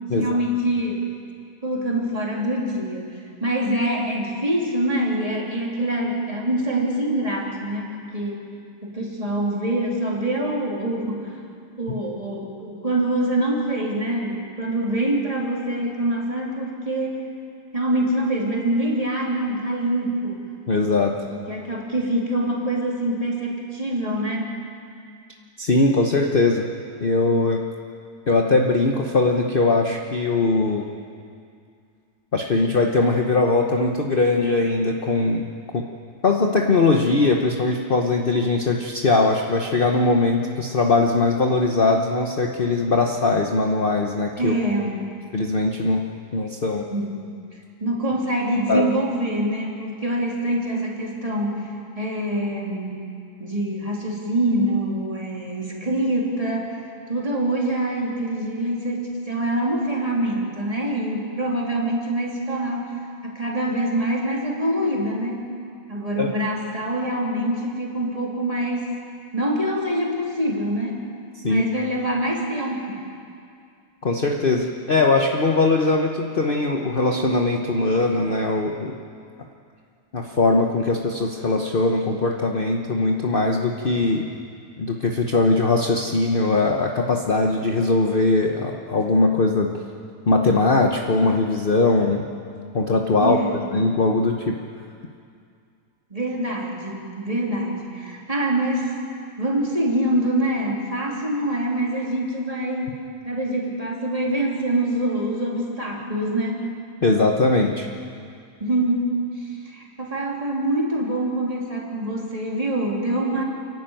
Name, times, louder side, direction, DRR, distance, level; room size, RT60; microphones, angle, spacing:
voice 1, 0.2-1.0 1.6-8.4 8.8-11.5 11.8-17.2 17.7-20.4 21.3-24.6 44.4-45.0 46.9-47.1 47.8-53.0 53.4-65.5 65.9-68.9 69.3-71.0 71.4-73.0 93.2-93.6 96.1-98.9 99.4-106.7 108.6-113.4, right 1 dB, 20° right, -3 dB, 3.5 m, -25 dB
voice 2, 20.7-21.2 25.6-26.6 27.0-27.6 28.3-30.9 32.3-35.5 35.7-35.8 36.2-44.5 45.3-46.0 46.3-46.9 48.7-48.9 66.2-66.3 71.4-71.6 74.0-78.9 80.1-84.3 84.8-89.7 90.3-92.3 92.7-93.4 93.7-94.6 107.0-107.9, left 3 dB, 40° left, 2 dB, 1.2 m, -20 dB
30.0 x 11.5 x 9.1 m, 2.4 s
omnidirectional pair, 1.7 m